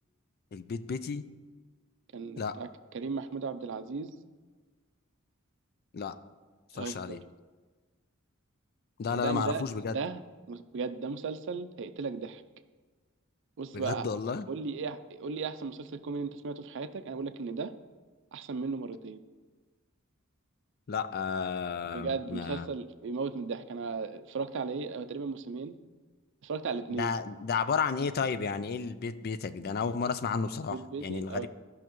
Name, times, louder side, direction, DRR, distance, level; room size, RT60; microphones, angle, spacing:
voice 1, 0.5-1.2 2.4-2.5 5.9-6.1 6.7-7.2 9.0-10.0 13.7-14.5 20.9-22.7 26.9-31.5, left 5 dB, 50° left, 12 dB, 0.4 m, -32 dB
voice 2, 2.1-4.1 6.7-7.2 9.1-9.7 9.9-10.2 10.5-12.4 13.6-14.1 14.5-17.7 18.3-19.2 21.9-25.8 26.4-27.1 30.7-31.5, right 4 dB, 60° right, 10 dB, 0.5 m, -36 dB
14.5 x 5.6 x 3.0 m, 1.4 s
head